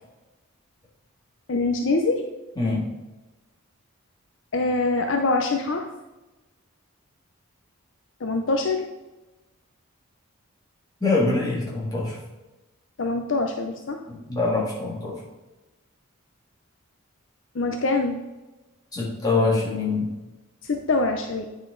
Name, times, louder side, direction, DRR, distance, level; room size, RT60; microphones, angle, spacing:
voice 1, 1.5-2.3 4.5-5.9 8.2-8.8 13.0-14.0 17.5-18.2 20.6-21.5, left 3 dB, 55° left, 4 dB, 0.6 m, -24 dB
voice 2, 2.6-2.9 11.0-12.2 14.1-15.2 18.9-20.1, left 3 dB, 15° left, -5 dB, 1.9 m, -24 dB
9.1 x 5.1 x 3.8 m, 1.1 s
head